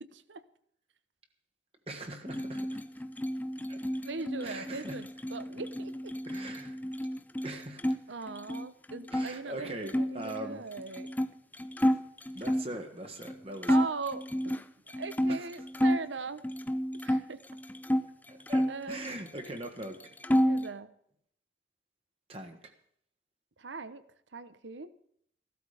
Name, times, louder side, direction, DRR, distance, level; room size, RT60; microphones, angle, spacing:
voice 1, 0.0-0.4 4.0-6.1 7.5-7.6 8.1-11.1 13.7-14.6 14.9-16.4 17.0-17.4 18.7-19.1 20.4-20.9 23.6-24.0 24.3-24.9, right 4 dB, 85° right, 13 dB, 1.0 m, -40 dB
voice 2, 1.9-2.8 3.7-3.8 4.4-5.0 6.2-6.8 7.4-8.0 9.1-10.6 11.8-12.0 12.3-13.8 15.3-15.5 18.3-20.0 22.3-22.7, right 1 dB, 30° right, 5 dB, 1.3 m, -41 dB
sound 1, 2.3-8.0 8.3-9.3 9.9-12.7 13.2-13.3 13.6-16.1 16.4-18.1 18.5-19.6 19.8-20.7, equal, 10° left, 0.5 m, -30 dB
15.5 x 12.5 x 5.0 m, 0.67 s
head